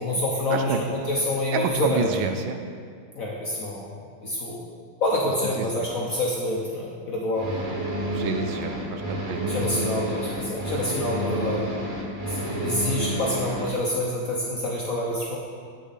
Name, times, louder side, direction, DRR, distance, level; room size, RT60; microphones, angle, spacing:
voice 1, 0.0-2.0 3.1-4.0 4.2-4.6 5.0-7.5 9.5-11.6 12.3-15.4, left 1 dB, 60° left, -2 dB, 0.9 m, -27 dB
voice 2, 1.5-2.6 5.6-5.9 8.1-9.6, right 6 dB, 80° right, 6 dB, 1.3 m, -29 dB
sound 1, 7.3-13.7, equal, 45° right, 0.6 m, -30 dB
8.3 x 6.5 x 4.0 m, 2.1 s
omnidirectional pair, 2.3 m